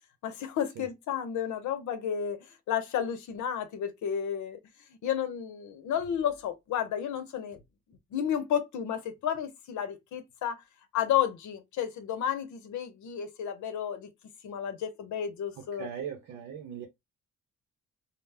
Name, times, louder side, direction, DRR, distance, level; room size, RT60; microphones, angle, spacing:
voice 1, 0.2-4.6 5.0-7.6 8.1-10.6 10.9-14.1 14.4-15.9, left 9 dB, 70° left, 0.7 m, -32 dB
voice 2, 15.6-16.9, right 8 dB, 85° right, 0.7 m, -39 dB
2.1 x 2.1 x 3.3 m
cardioid pair, 90°, 30 cm